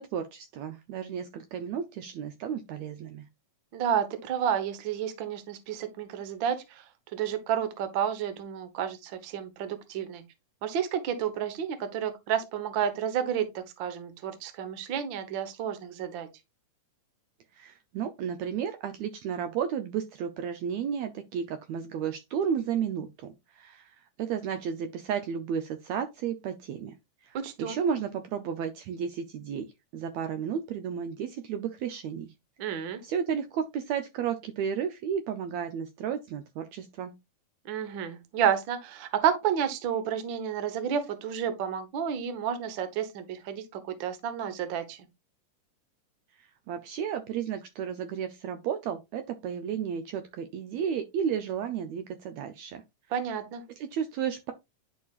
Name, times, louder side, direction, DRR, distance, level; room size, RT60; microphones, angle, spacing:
voice 1, 0.0-3.3 17.5-27.0 27.2-29.7 29.9-32.3 33.0-37.1 46.4-52.8 53.8-54.5, right 8 dB, 75° right, 1.7 m, -33 dB
voice 2, 3.7-6.8 7.1-10.2 10.6-16.3 27.3-27.8 32.6-33.0 37.6-45.0 53.1-53.6, right 8 dB, 55° right, 1.3 m, -31 dB
10.5 x 5.0 x 2.4 m
omnidirectional pair, 3.6 m